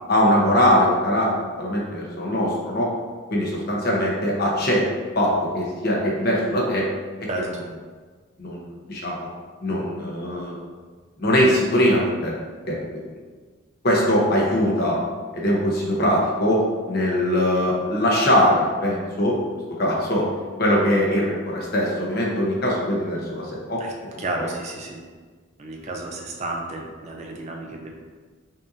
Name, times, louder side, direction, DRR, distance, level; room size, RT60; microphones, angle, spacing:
voice 1, 0.1-1.3 1.6-2.9 3.3-4.8 5.1-6.9 8.4-8.6 8.9-9.3 9.6-10.6 11.2-12.3 12.7-12.8 13.8-15.0 15.3-16.6 16.9-19.4 19.8-20.3 20.6-23.8 24.1-24.5, equal, 50° left, -3 dB, 0.8 m, -21 dB
voice 2, 7.3-7.6 23.8-23.9 24.2-25.0 25.6-27.9, right 2 dB, 30° right, 1 dB, 0.5 m, -32 dB
5.3 x 2.6 x 2.6 m, 1.5 s
head